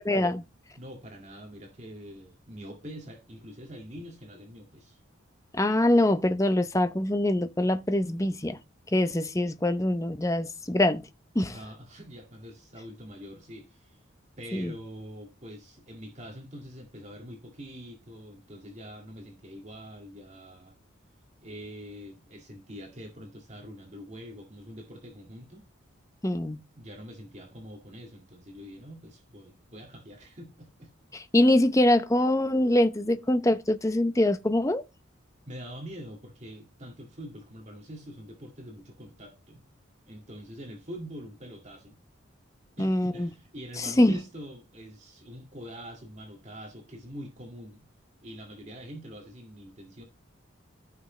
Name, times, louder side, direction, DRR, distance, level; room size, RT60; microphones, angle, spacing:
voice 1, 0.1-0.4 5.5-8.6 8.9-11.0 11.3-11.5 14.5-14.7 26.2-26.6 31.3-34.8 42.8-43.3 43.8-44.2, left 1 dB, 15° left, 0.6 m, -24 dB
voice 2, 0.8-5.0 11.5-14.0 14.4-20.8 21.4-25.6 26.7-30.9 35.5-39.6 40.1-42.0 42.8-47.9 48.2-50.0, equal, 35° right, 2.1 m, -44 dB
14.5 x 5.9 x 3.2 m
head